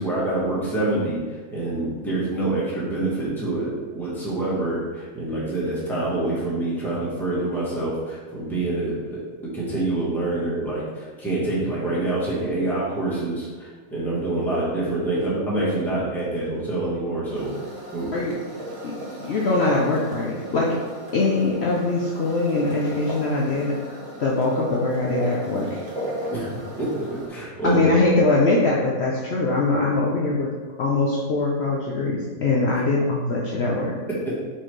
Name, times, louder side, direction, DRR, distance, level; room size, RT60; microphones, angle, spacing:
voice 1, 0.0-9.2 9.5-17.5 17.9-18.3 26.3-26.5 26.8-28.0 34.1-34.4, right 2 dB, ahead, -7 dB, 1.0 m, -26 dB
sound 1, 17.3-27.3, equal, 50° right, 1.1 m, -36 dB
voice 2, 19.2-20.8 21.1-25.8 27.6-33.9, left 2 dB, 70° left, -3 dB, 0.6 m, -22 dB
4.3 x 3.7 x 3.1 m, 1.5 s
omnidirectional pair, 1.7 m